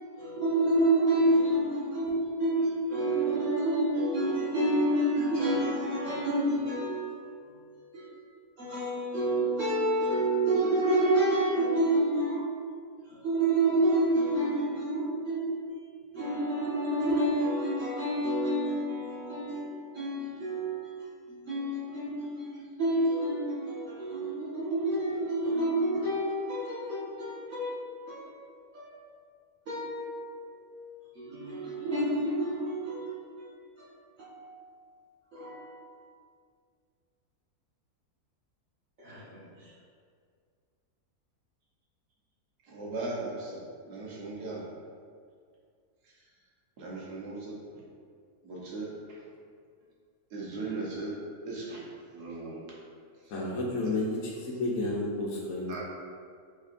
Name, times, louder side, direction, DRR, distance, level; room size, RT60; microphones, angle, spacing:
voice 1, 0.0-7.2 7.9-8.1 8.6-12.4 13.1-15.5 16.1-21.0 21.3-28.3 28.7-29.0 29.7-30.8 31.1-33.5 33.8-33.9 34.2-34.7 35.3-35.8 39.0-39.5, right 1 dB, 55° right, -15 dB, 1.7 m, -29 dB
voice 2, 42.7-44.6 46.0-46.1 46.8-47.6 48.4-48.9 50.3-51.2 51.4-51.8 52.1-52.7 53.2-53.3 53.8-53.9 55.7-55.8, right 3 dB, 85° right, -5 dB, 1.6 m, -38 dB
voice 3, 53.3-55.8, left 2 dB, 65° left, -4 dB, 1.1 m, -31 dB
5.5 x 3.6 x 2.5 m, 2.1 s
omnidirectional pair, 1.6 m